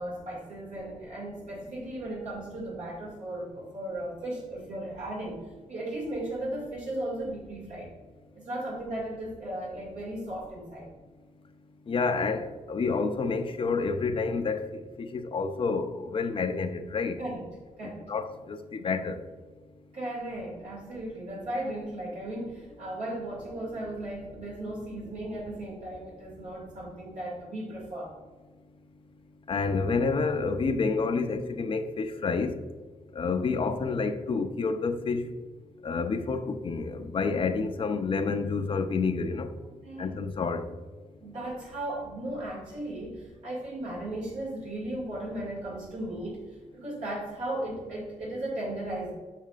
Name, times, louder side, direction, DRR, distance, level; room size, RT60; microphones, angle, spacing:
voice 1, 0.0-5.4 5.7-7.9 8.4-10.9 17.2-17.5 17.8-18.0 19.9-28.1 39.8-40.2 41.2-49.1, right 1 dB, 75° right, -5 dB, 2.2 m, -36 dB
voice 2, 11.9-14.6 15.1-17.1 18.1-18.6 18.8-19.2 29.5-32.5 33.2-35.2 35.8-39.5 40.0-40.6, left 4 dB, 45° left, 7 dB, 0.6 m, -28 dB
7.4 x 7.0 x 2.5 m, 1.4 s
wide cardioid pair, 125°, 13 cm